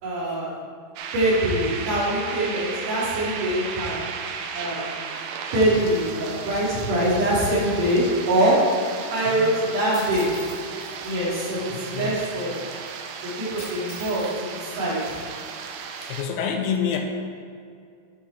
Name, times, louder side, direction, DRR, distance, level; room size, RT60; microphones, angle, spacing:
voice 1, 0.0-0.5 1.1-4.0 4.5-4.9 5.5-8.6 9.1-10.3 11.0-12.6 13.2-15.1, right 1 dB, 60° right, -7 dB, 3.7 m, -24 dB
sound 1, 1.0-16.2, right 6 dB, 80° right, 2.4 m, -35 dB
voice 2, 9.3-9.6 11.7-12.2 16.1-17.0, left 7 dB, 85° left, 3 dB, 2.8 m, -27 dB
sound 2, 9.9-11.1 13.6-14.3 14.6-15.2, left 2 dB, 40° left, 2.4 m, -43 dB
11.5 x 5.6 x 4.2 m, 2.3 s
omnidirectional pair, 4.4 m